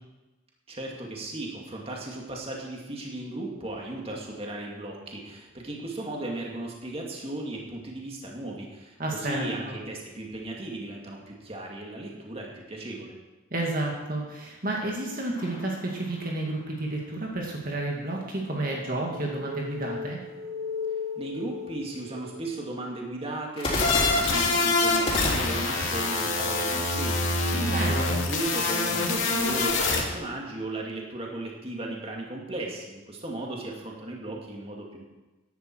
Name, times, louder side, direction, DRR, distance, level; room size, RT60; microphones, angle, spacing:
voice 1, 0.7-13.1 21.2-27.7 28.1-35.0, right 2 dB, 30° right, -1 dB, 2.3 m, -36 dB
voice 2, 9.0-9.7 13.5-20.2 27.6-28.1, right 2 dB, 45° right, -2 dB, 2.2 m, -31 dB
sound 1, 15.3-16.8 23.6-27.5, left 1 dB, 25° left, 4.0 m, -33 dB
sound 2, 18.3-23.0 26.2-26.4, left 5 dB, 85° right, 2.4 m, -37 dB
sound 3, 23.7-30.0, left 3 dB, 80° left, 2.4 m, -25 dB
15.5 x 11.0 x 4.7 m, 1.1 s
head